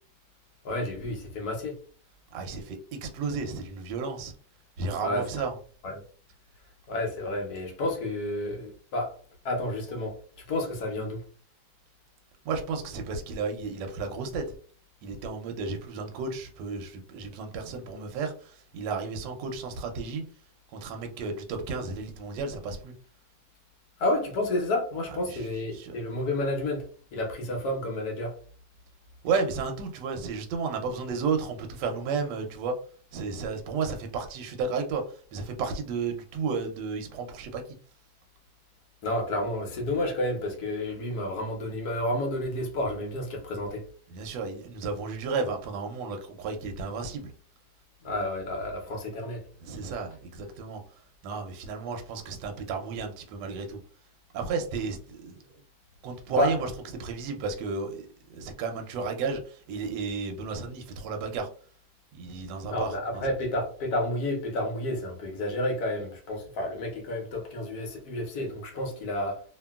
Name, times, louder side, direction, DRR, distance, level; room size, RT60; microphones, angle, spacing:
voice 1, 0.6-1.7 5.0-5.2 5.8-5.9 6.9-9.1 9.4-10.2 10.5-11.2 24.0-26.8 27.1-28.3 39.0-43.8 48.0-49.4 56.4-56.5 62.7-69.4, left 1 dB, 65° left, 1.1 m, -30 dB
voice 2, 2.3-4.3 4.8-5.5 12.4-14.6 15.0-20.3 20.7-22.9 25.3-25.4 25.7-25.9 29.2-32.8 33.1-37.6 44.1-47.3 49.6-50.8 51.2-53.8 54.3-55.4 56.0-61.5 62.1-63.2, right 4 dB, 70° right, 1.1 m, -33 dB
2.8 x 2.6 x 2.3 m
omnidirectional pair, 2.1 m